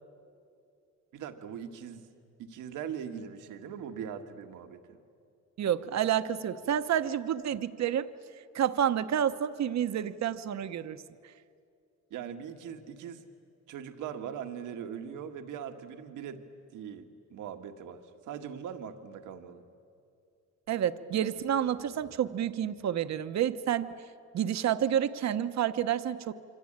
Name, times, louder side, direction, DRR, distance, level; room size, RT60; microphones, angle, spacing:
voice 1, 1.1-2.1 2.4-5.0 12.1-13.2 13.7-16.4 16.7-19.6, right 8 dB, 85° right, 6 dB, 1.7 m, -41 dB
voice 2, 5.6-8.1 8.5-11.0 20.7-24.0 24.3-26.3, right 10 dB, 60° right, 11 dB, 1.1 m, -29 dB
27.0 x 25.0 x 8.9 m, 2.4 s
cardioid pair, 90°, 30 cm